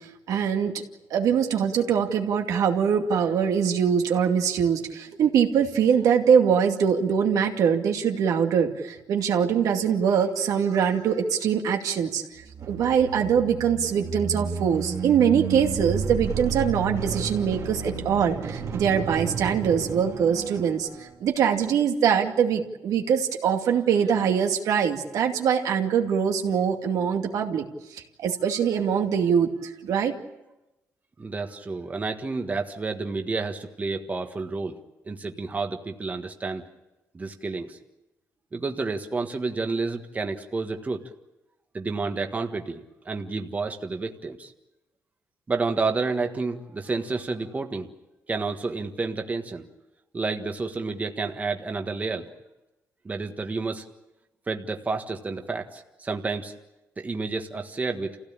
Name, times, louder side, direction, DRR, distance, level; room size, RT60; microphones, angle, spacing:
voice 1, 0.3-0.8 1.1-12.2 12.7-27.7 27.9-30.1, right 7 dB, 80° right, 3 dB, 2.4 m, -23 dB
sound 1, 12.4-21.1, right 5 dB, 55° right, 2.4 m, -32 dB
voice 2, 31.2-34.8 35.0-36.6 37.1-37.8 38.5-41.1 41.7-44.5 45.5-47.9 48.3-49.7 50.1-52.3 53.0-53.8 54.5-56.5 57.0-58.2, right 3 dB, 25° right, 5 dB, 1.6 m, -30 dB
28.5 x 16.5 x 8.7 m, 1.0 s
cardioid pair, 110°, 6 cm